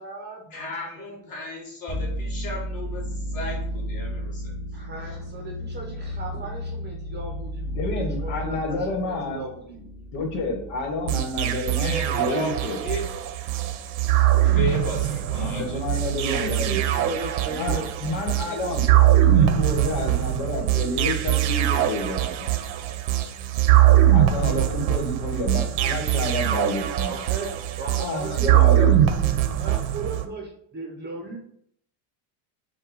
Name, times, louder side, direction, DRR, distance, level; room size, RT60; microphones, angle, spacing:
voice 1, 0.0-0.7 1.1-1.3 4.7-9.9 14.2-14.3 16.2-19.1 27.0-29.0 29.5-31.4, right 3 dB, 20° right, 1 dB, 0.6 m, -37 dB
voice 2, 0.5-4.5 11.7-13.0 14.4-15.8, left 2 dB, 45° left, -2 dB, 1.8 m, -34 dB
sound 1, 1.9-11.5, equal, 15° left, 1.1 m, -33 dB
voice 3, 7.7-9.4 10.1-12.8 15.3-16.8 17.5-18.9 19.3-22.5 24.1-27.1 28.0-29.1, left 2 dB, 80° left, 2 dB, 1.3 m, -29 dB
sound 2, 11.1-30.3, right 12 dB, 85° right, 0.7 m, -22 dB
5.4 x 2.3 x 3.9 m, 0.67 s
cardioid pair, 145°, 50 cm